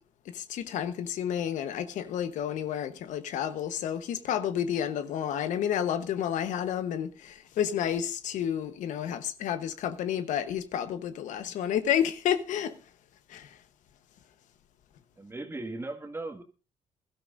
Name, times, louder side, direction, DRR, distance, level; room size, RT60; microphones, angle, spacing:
voice 1, 0.3-12.8 13.3-13.5, left 9 dB, 85° left, 1.0 m, -30 dB
voice 2, 15.2-16.4, right 2 dB, 20° right, 1.8 m, -37 dB
22.0 x 12.5 x 2.5 m
cardioid pair, 90°, 13 cm